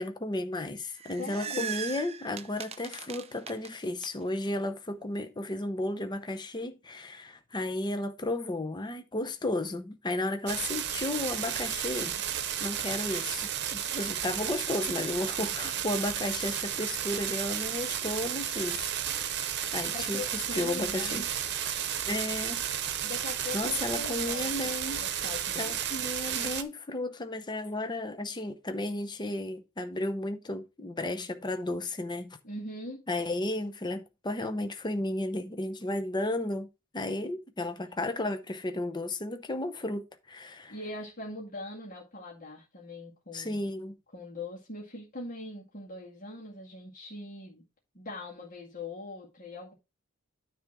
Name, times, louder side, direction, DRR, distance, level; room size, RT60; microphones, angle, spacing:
voice 1, 0.0-12.2 12.6-21.2 22.1-23.0 23.5-25.0 25.6-32.4 33.1-36.7 36.9-40.7 43.3-44.0, left 1 dB, 20° left, 0.7 m, -33 dB
sound 1, 0.8-4.1, right 7 dB, 30° right, 0.5 m, -39 dB
voice 2, 1.2-1.8 19.9-21.3 23.0-25.8 32.4-33.1 40.7-43.6 44.1-47.6 47.9-49.7, left 2 dB, 45° left, 2.1 m, -41 dB
sound 2, 10.5-26.6, right 9 dB, 60° right, 0.9 m, -33 dB
9.5 x 3.4 x 5.9 m
head